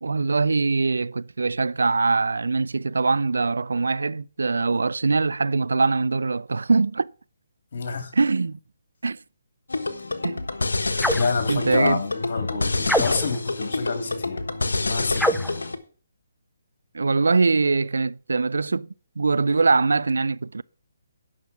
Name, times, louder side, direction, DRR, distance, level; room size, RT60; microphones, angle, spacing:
voice 1, 0.0-7.1 8.1-8.6 9.0-9.2 10.2-10.4 11.5-12.0 16.9-18.9 19.2-20.6, right 4 dB, 80° right, 0.4 m, -22 dB
voice 2, 7.7-8.1 11.1-14.5 14.7-15.3, left 4 dB, 55° left, 2.9 m, -28 dB
sound 1, 9.7-15.8, left 3 dB, 85° left, 1.3 m, -27 dB
sound 2, 11.0-11.4 12.8-13.4 15.2-15.6, equal, ahead, 0.5 m, -24 dB
9.7 x 6.0 x 6.0 m
figure-of-eight pair, 145°, 0 cm